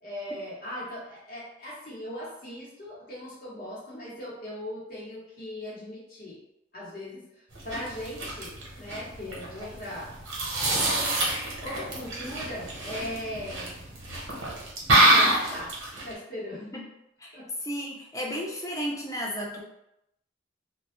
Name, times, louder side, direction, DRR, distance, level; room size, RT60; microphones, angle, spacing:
voice 1, 0.0-6.4 6.7-7.2 7.6-10.1 11.6-13.8 14.9-15.7 16.0-16.7 17.3-17.5, left 1 dB, 45° left, -6 dB, 0.9 m, -38 dB
sound 1, 7.5-16.1, right 1 dB, 80° right, 0.8 m, -27 dB
voice 2, 17.2-19.6, equal, 15° left, -1 dB, 0.4 m, -33 dB
2.2 x 2.0 x 2.9 m, 0.83 s
head